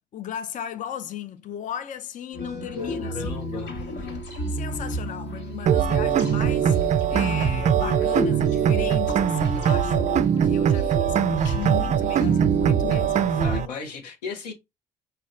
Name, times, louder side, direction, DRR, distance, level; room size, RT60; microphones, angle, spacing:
voice 1, 0.1-4.2 4.5-13.4, left 10 dB, 40° left, 0.5 m, -36 dB
sound 1, 2.3-13.6, left 1 dB, 55° left, 1.2 m, -32 dB
voice 2, 2.7-3.7 13.4-14.5, left 5 dB, 85° left, 0.9 m, -35 dB
sound 2, 2.8-11.0, right 7 dB, 15° right, 0.9 m, -47 dB
sound 3, 5.7-13.7, right 9 dB, 35° right, 0.4 m, -22 dB
5.1 x 2.2 x 2.4 m
hypercardioid pair, 55°, 21 cm